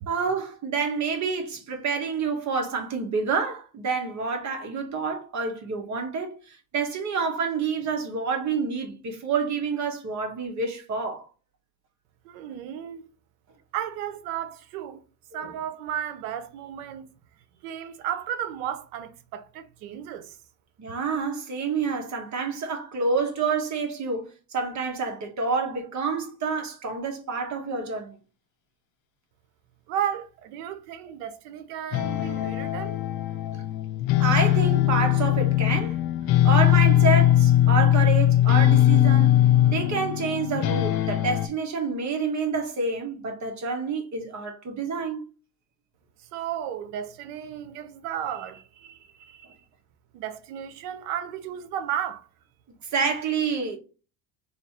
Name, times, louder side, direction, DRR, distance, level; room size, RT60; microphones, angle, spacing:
voice 1, 0.1-11.3 15.4-15.5 20.8-28.2 33.5-33.6 34.2-36.0 36.4-45.2 52.9-53.8, right 5 dB, 40° right, 1.3 m, -28 dB
voice 2, 12.2-13.1 13.7-15.0 15.3-17.1 17.6-20.4 29.9-33.0 46.3-49.6 50.1-52.3, right 10 dB, 80° right, 0.8 m, -34 dB
sound 1, 31.9-41.5, left 13 dB, 50° left, 0.6 m, -20 dB
3.3 x 2.7 x 4.1 m
supercardioid pair, 105°, 45 cm